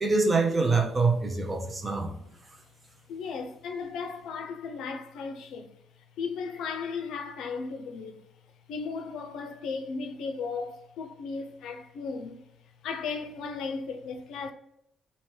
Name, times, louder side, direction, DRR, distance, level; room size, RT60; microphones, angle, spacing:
voice 1, 0.0-2.1 2.4-2.6, right 3 dB, 25° right, 0.9 m, -25 dB
voice 2, 3.1-5.7 6.2-8.2 8.7-12.4 12.8-14.5, left 5 dB, 80° left, 0.5 m, -35 dB
3.2 x 2.9 x 4.6 m
cardioid pair, 90°, 0 cm